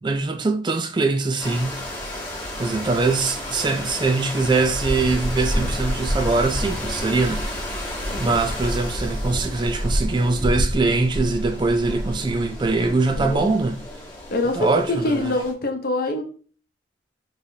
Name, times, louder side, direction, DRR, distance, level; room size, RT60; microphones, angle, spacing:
voice 1, 0.0-1.9 2.6-7.7 8.2-13.8 14.5-15.3, right 3 dB, 25° right, 0.4 m, -22 dB
sound 1, 1.4-15.5, equal, 15° left, 1.4 m, -29 dB
voice 2, 13.2-13.5 14.3-16.2, left 2 dB, 55° left, 0.8 m, -24 dB
5.3 x 3.2 x 2.7 m
head